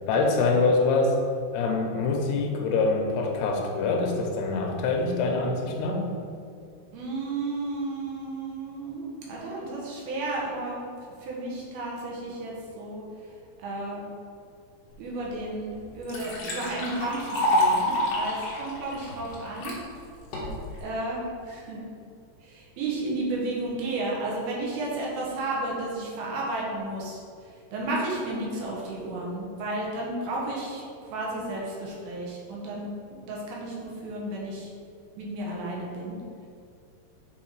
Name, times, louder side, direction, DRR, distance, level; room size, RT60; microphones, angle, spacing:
voice 1, 0.1-1.2 1.5-6.1, left 3 dB, 85° left, 2 dB, 2.9 m, -25 dB
voice 2, 6.9-10.9 11.2-13.3 13.6-14.0 15.0-19.8 20.8-21.8 22.4-30.8 31.1-34.7 35.2-36.2, right 2 dB, 70° right, -4 dB, 3.0 m, -33 dB
Liquid, 15.3-15.4 15.8-19.8 20.3-20.8, left 1 dB, 65° left, 1.6 m, -27 dB
7.8 x 4.0 x 4.7 m, 2.4 s
omnidirectional pair, 4.8 m